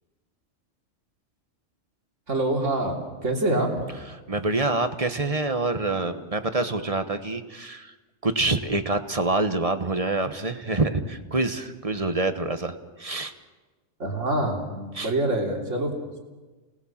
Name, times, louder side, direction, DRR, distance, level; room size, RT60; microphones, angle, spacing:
voice 1, 2.3-2.9 3.2-3.8 14.0-16.2, right 1 dB, 75° right, 1 dB, 3.7 m, -26 dB
voice 2, 4.3-7.9 8.2-13.3 14.9-15.1, right 2 dB, 30° right, 9 dB, 1.3 m, -26 dB
29.5 x 19.0 x 7.4 m, 1.3 s
omnidirectional pair, 1.3 m